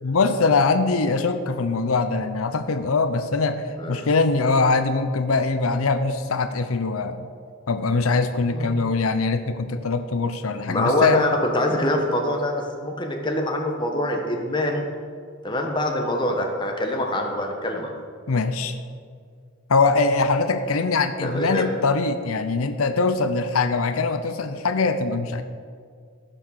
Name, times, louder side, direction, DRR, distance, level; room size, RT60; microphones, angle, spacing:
voice 1, 0.0-7.3 7.7-11.2 18.3-18.8 19.7-25.4, left 3 dB, 90° left, 9 dB, 0.7 m, -22 dB
voice 2, 10.7-14.8 15.4-17.9 21.2-21.7, left 1 dB, 20° left, 2 dB, 1.3 m, -24 dB
15.0 x 6.0 x 6.5 m, 2.1 s
head